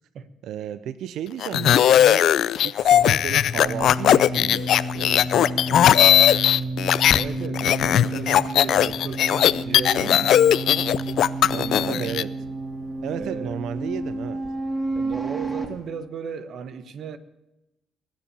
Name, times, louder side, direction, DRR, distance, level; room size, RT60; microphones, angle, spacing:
voice 1, 0.4-2.3 2.6-6.5 11.9-12.3 13.0-14.4, right 10 dB, 80° right, 0.6 m, -34 dB
sound 1, 1.4-7.2 7.5-12.2, left 11 dB, 75° left, 0.4 m, -18 dB
sound 2, 2.8-15.7, right 2 dB, 30° right, 2.5 m, -31 dB
voice 2, 7.1-10.4 11.5-12.2 13.1-13.6 14.9-17.2, right 6 dB, 65° right, 1.2 m, -35 dB
20.5 x 7.5 x 6.9 m
cardioid pair, 90°, 0 cm